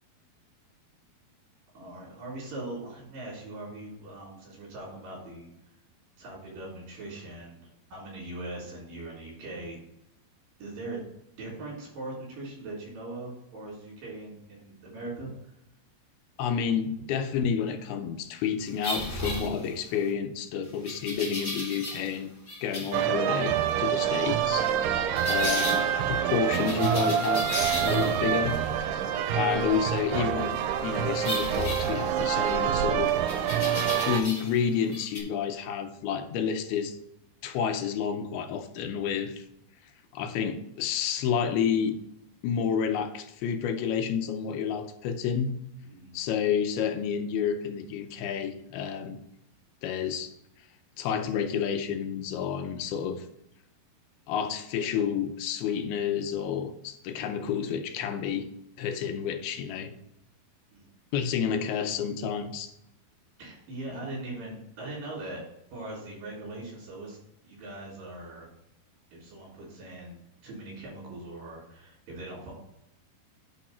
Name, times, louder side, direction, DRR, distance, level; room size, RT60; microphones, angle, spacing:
voice 1, 1.7-5.5 6.2-7.6 7.9-9.8 10.6-11.0 11.4-15.3 45.8-46.2 60.7-60.9 63.4-65.4 65.7-67.2 67.4-68.5 69.1-72.5, right 2 dB, 60° right, -4 dB, 5.3 m, -40 dB
voice 2, 16.4-22.3 22.6-24.7 25.2-27.5 27.8-28.6 29.3-33.2 34.0-37.0 37.4-39.5 40.1-42.0 42.4-45.5 46.1-49.2 49.8-50.3 50.6-50.7 51.0-53.3 54.3-58.5 58.8-60.0 61.1-62.7, left 7 dB, 80° left, 7 dB, 2.5 m, -30 dB
sound 1, 18.8-20.0 20.8-22.2 22.5-23.0 25.2-25.8 26.5-28.3 31.2-32.5 33.3-34.6 34.9-35.2, left 1 dB, 25° left, 1.0 m, -34 dB
sound 2, 22.9-34.2, right 9 dB, 85° right, 2.7 m, -27 dB
10.0 x 4.5 x 4.2 m, 0.80 s
omnidirectional pair, 4.6 m